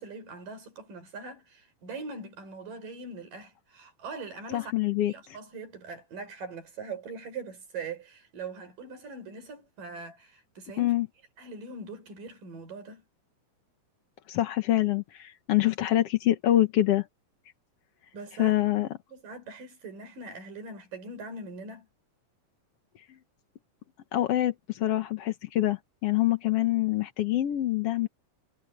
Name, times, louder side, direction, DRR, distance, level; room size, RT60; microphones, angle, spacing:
voice 1, 0.0-4.8 5.1-10.9 11.4-13.0 18.1-21.9, right 3 dB, 75° right, 7.4 m, -42 dB
voice 2, 4.5-5.4 10.8-11.1 14.3-17.1 18.4-18.9 24.1-28.1, left 14 dB, 60° left, 1.7 m, -25 dB
omnidirectional pair, 3.8 m